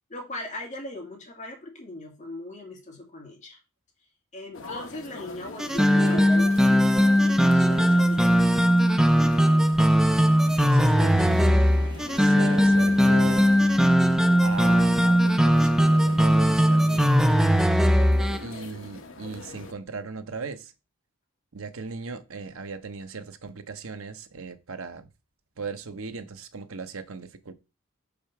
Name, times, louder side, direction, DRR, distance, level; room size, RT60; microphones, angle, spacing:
voice 1, 0.1-3.6 4.3-6.8 7.2-8.3, left 2 dB, 35° left, 2.3 m, -39 dB
sound 1, 4.5-19.7, left 2 dB, 65° left, 1.0 m, -42 dB
sound 2, 5.6-18.4, equal, ahead, 0.3 m, -19 dB
sound 3, 9.6-16.8, equal, 20° right, 0.9 m, -43 dB
voice 2, 10.5-11.8 12.2-13.5 14.4-17.3 18.4-20.7 21.5-25.1 25.6-27.5, right 4 dB, 80° right, 0.9 m, -38 dB
5.1 x 4.5 x 5.9 m
head